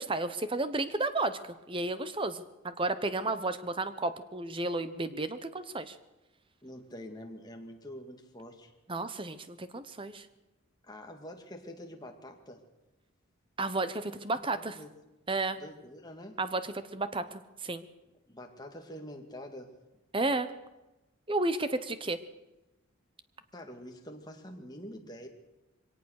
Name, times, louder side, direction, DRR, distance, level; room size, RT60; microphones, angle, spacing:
voice 1, 0.0-6.0 8.9-10.3 13.6-14.7 15.3-15.6 16.4-17.8 20.1-20.5 21.3-22.2, right 2 dB, 25° right, 12 dB, 0.9 m, -32 dB
voice 2, 6.6-8.7 10.8-12.6 14.2-14.9 15.6-16.4 18.3-19.7 23.5-25.3, left 1 dB, 20° left, 3 dB, 2.2 m, -46 dB
22.5 x 18.0 x 6.6 m, 1.0 s
head